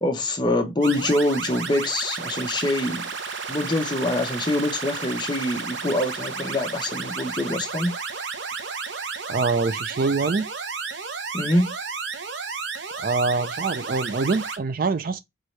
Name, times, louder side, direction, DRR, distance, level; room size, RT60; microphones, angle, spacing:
voice 1, 0.0-3.0 3.5-8.0 11.3-11.8, left 1 dB, 20° left, 0.8 m, -24 dB
sound 1, 0.8-14.6, right 5 dB, 60° right, 0.8 m, -32 dB
voice 2, 9.3-10.5 12.9-15.2, right 4 dB, 45° right, 0.4 m, -24 dB
4.6 x 3.1 x 3.1 m
head